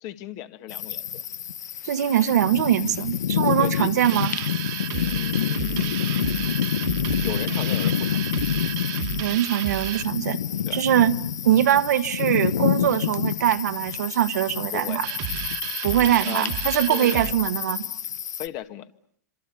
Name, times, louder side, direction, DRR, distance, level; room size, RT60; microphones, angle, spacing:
voice 1, 0.0-1.2 3.6-3.9 4.9-6.7 7.1-8.4 10.7-10.8 14.7-15.0 16.2-16.5 16.9-17.3 18.4-18.9, left 12 dB, 45° left, 1.9 m, -36 dB
sound 1, 0.7-18.5, left 9 dB, 80° left, 1.0 m, -28 dB
voice 2, 1.8-4.3 9.2-10.4 10.7-11.2 11.4-15.1 15.8-17.9, right 11 dB, 70° right, 1.5 m, -22 dB
sound 2, 4.0-10.1 15.0-17.3, right 15 dB, 45° right, 1.7 m, -32 dB
27.0 x 26.0 x 6.9 m
hypercardioid pair, 115°, 9 cm